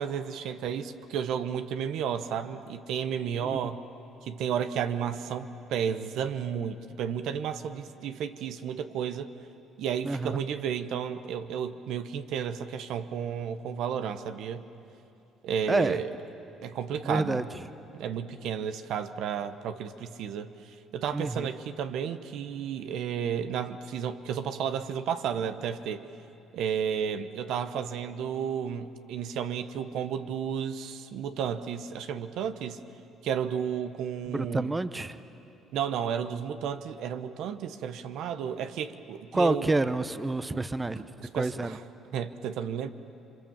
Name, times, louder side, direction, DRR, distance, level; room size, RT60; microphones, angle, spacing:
voice 1, 0.0-3.8 4.2-9.3 9.8-14.7 15.4-16.1 16.6-17.5 17.9-26.0 26.5-32.8 33.2-34.7 35.7-39.7 41.2-41.8 42.1-42.9, right 8 dB, 75° right, 9 dB, 0.9 m, -32 dB
voice 2, 10.0-10.4 15.7-16.0 17.0-17.4 21.1-21.5 34.3-35.2 39.3-41.0 41.3-41.8, right 2 dB, 20° right, 12 dB, 0.9 m, -28 dB
27.5 x 24.5 x 7.3 m, 2.8 s
supercardioid pair, 70°, 0 cm